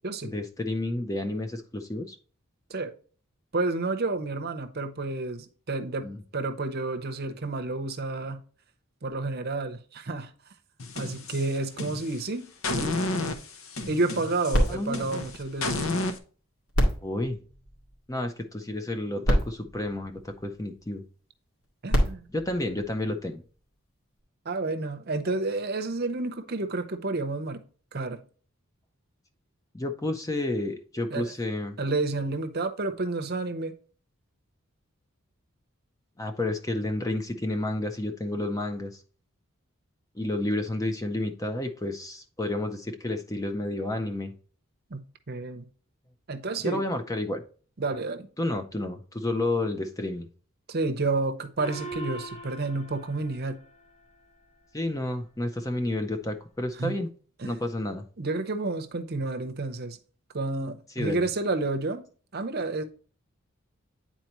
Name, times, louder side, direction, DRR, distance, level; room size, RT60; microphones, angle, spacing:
voice 1, 0.2-2.1 6.0-6.2 14.7-15.0 17.0-17.4 18.1-21.0 22.3-23.4 29.7-31.8 36.2-39.0 40.1-44.3 46.6-47.4 48.4-50.3 54.7-57.1 57.4-58.0 61.0-61.3, left 1 dB, 15° left, 0.6 m, -30 dB
voice 2, 3.5-8.4 9.0-10.3 10.9-12.5 12.7-12.9 13.8-15.9 21.8-22.3 24.4-27.6 27.9-28.2 31.1-31.3 31.8-33.7 44.9-45.7 46.3-46.8 47.8-48.3 50.7-53.6 56.8-57.0 57.4-57.5 58.2-60.0 60.3-62.0 62.3-62.8, right 3 dB, 45° right, 0.7 m, -30 dB
sound 1, 10.8-12.2 12.6-16.2, left 2 dB, 70° left, 0.8 m, -31 dB
sound 2, 14.5-16.2 16.7-18.3 19.0-19.1 19.2-20.8 21.6-23.5 24.2-24.3, equal, 85° left, 2.1 m, -29 dB
Gong, 51.6-54.5, right 1 dB, 30° left, 1.0 m, -41 dB
9.3 x 4.2 x 3.0 m
head